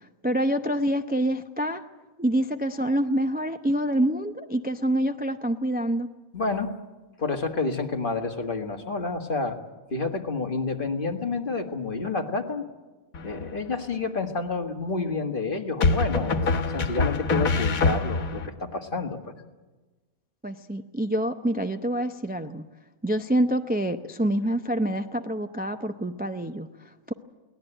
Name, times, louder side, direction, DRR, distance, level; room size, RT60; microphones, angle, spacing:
voice 1, 0.0-1.8 2.2-6.1 20.4-22.6 23.0-27.1, right 1 dB, 15° right, 7 dB, 0.4 m, -26 dB
voice 2, 6.3-6.7 7.2-9.6 9.9-12.7 13.2-19.3, left 3 dB, 40° left, 4 dB, 1.8 m, -29 dB
sound 1, 13.1-13.7 15.8-18.5, left 3 dB, 75° left, 1.8 m, -25 dB
22.5 x 18.0 x 9.0 m, 1.2 s
omnidirectional pair, 1.5 m